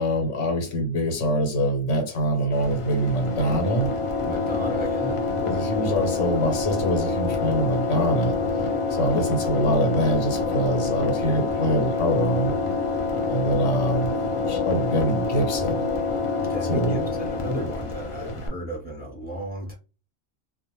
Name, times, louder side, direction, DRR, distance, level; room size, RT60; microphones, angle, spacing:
voice 1, 0.0-3.9 5.4-8.3 8.6-12.5 13.3-14.1 14.5-15.8 16.6-17.0 18.2-18.3, equal, 80° left, 4 dB, 1.2 m, -24 dB
sound 1, 2.5-18.5, left 4 dB, 50° left, 0.4 m, -27 dB
voice 2, 4.2-5.2 16.5-19.7, right 1 dB, 10° right, -1 dB, 0.8 m, -33 dB
2.4 x 2.2 x 2.9 m, 0.32 s
omnidirectional pair, 1.2 m